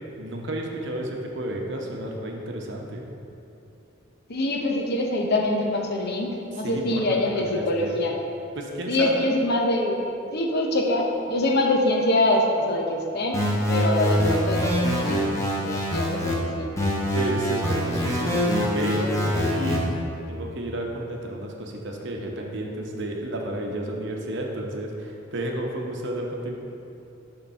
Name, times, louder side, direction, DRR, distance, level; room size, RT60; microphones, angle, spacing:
voice 1, 0.2-3.0 6.5-8.0 8.6-9.3 17.1-18.4 18.7-19.9 20.3-26.6, right 1 dB, 65° right, 1 dB, 0.8 m, -31 dB
voice 2, 4.3-8.2 8.9-10.0 10.3-13.4 13.7-15.2 15.6-16.7, left 1 dB, 55° left, 1 dB, 0.8 m, -24 dB
sound 1, 13.3-16.4 16.8-19.8, equal, 15° left, 1.0 m, -24 dB
6.5 x 3.9 x 5.6 m, 2.8 s
head